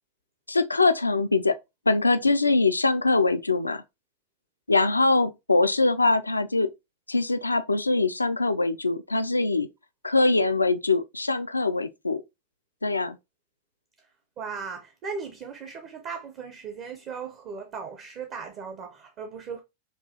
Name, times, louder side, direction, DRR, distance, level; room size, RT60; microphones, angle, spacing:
voice 1, 0.5-1.5 1.9-3.8 4.7-6.7 7.1-9.7 10.0-12.2 12.8-13.2, left 3 dB, 80° left, 0.3 m, -23 dB
voice 2, 14.4-19.6, right 5 dB, 35° right, 0.6 m, -37 dB
5.3 x 2.3 x 2.8 m
figure-of-eight pair, 90°, 0 cm